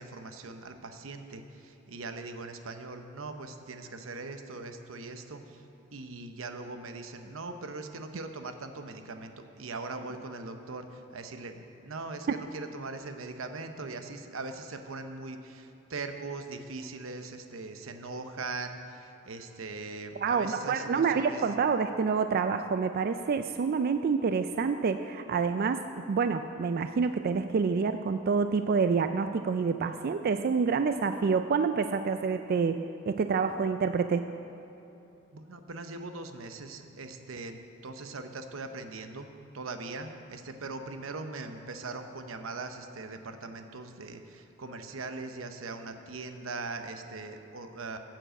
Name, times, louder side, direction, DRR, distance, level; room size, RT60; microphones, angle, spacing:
voice 1, 0.0-5.6 5.9-21.4 35.3-48.0, right 3 dB, 90° right, 7 dB, 0.9 m, -40 dB
voice 2, 20.2-34.3, right 5 dB, 50° right, 9 dB, 0.3 m, -27 dB
10.0 x 7.6 x 7.6 m, 2.9 s
head